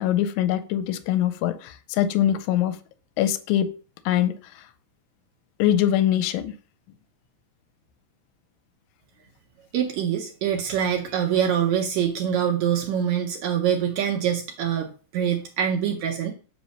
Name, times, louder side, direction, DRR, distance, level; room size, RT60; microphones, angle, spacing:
voice 1, 0.0-2.8 3.2-3.7 4.1-4.6 5.6-6.5, left 11 dB, 80° left, 12 dB, 1.7 m, -23 dB
voice 2, 9.7-16.3, right 8 dB, 75° right, 3 dB, 1.8 m, -24 dB
8.4 x 3.1 x 6.2 m, 0.38 s
omnidirectional pair, 3.9 m